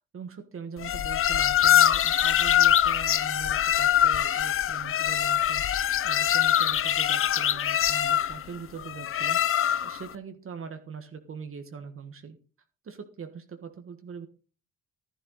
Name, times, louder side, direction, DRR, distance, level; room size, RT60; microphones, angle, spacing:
voice 1, 0.0-12.4 12.8-14.3, right 6 dB, 45° right, 7 dB, 1.5 m, -42 dB
sound 1, 0.8-10.0, left 10 dB, 45° left, 0.6 m, -23 dB
11.5 x 11.0 x 4.0 m, 0.37 s
cardioid pair, 90°, 30 cm